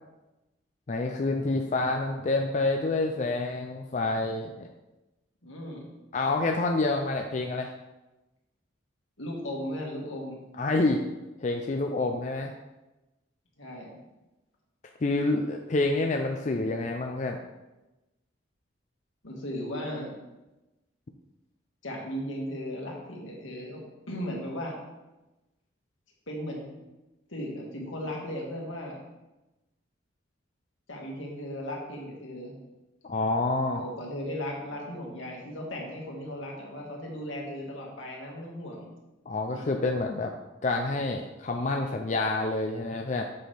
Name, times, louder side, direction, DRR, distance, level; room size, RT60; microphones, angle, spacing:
voice 1, 0.9-4.7 6.1-7.7 10.6-11.0 11.4-12.5 15.0-17.4 33.0-33.8 39.3-40.3 40.6-43.2, left 2 dB, 35° left, 3 dB, 0.4 m, -28 dB
voice 2, 5.4-5.9 9.2-10.4 13.6-14.0 19.2-20.1 21.8-24.8 26.3-26.7 27.3-29.0 30.9-32.6 33.7-38.9 39.5-39.7, equal, 80° left, -2 dB, 1.9 m, -36 dB
7.5 x 6.0 x 3.4 m, 1.0 s
head